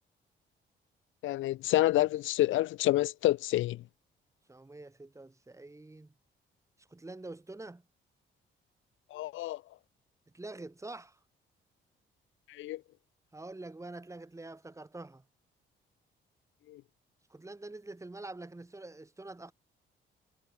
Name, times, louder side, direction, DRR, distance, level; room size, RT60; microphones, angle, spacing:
voice 1, 1.2-3.8 9.1-9.6 12.5-12.8 16.7-16.8, left 16 dB, 80° left, 0.6 m, -28 dB
voice 2, 4.5-6.1 6.9-7.8 10.3-11.2 13.3-15.2 17.3-19.5, right 2 dB, 15° right, 4.2 m, -46 dB
cardioid pair, 90°, 20 cm